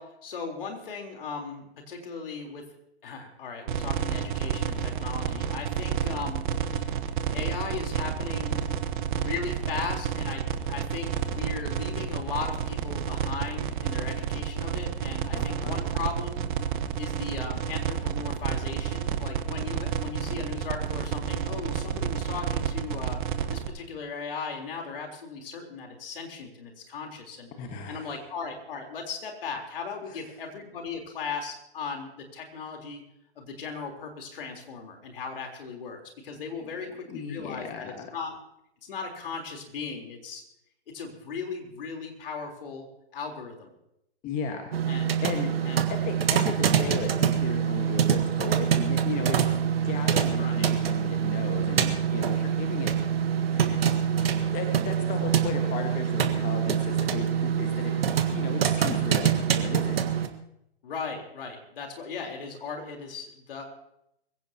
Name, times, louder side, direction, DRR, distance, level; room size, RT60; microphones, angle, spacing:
voice 1, 0.0-2.6 3.0-6.9 7.3-8.6 9.2-10.4 10.7-16.5 17.0-23.2 23.5-27.5 27.9-33.0 33.4-38.3 38.8-40.4 40.9-42.9 43.1-43.7 44.9-45.2 45.6-45.8 50.3-50.7 57.9-58.0 60.8-63.6, left 5 dB, 60° left, 2 dB, 3.9 m, -37 dB
sound 1, 3.7-23.7, right 8 dB, 50° right, 1.4 m, -30 dB
voice 2, 15.3-15.8 27.6-28.2 30.1-30.2 36.6-38.1 44.2-44.7 45.2-49.4 49.8-52.9 53.3-53.8 54.2-57.9 58.3-60.0, left 6 dB, 25° left, 4 dB, 1.6 m, -36 dB
sound 2, 44.7-60.3, right 8 dB, 65° right, 1.6 m, -25 dB
24.0 x 16.0 x 2.9 m, 0.79 s
figure-of-eight pair, 115°, 32 cm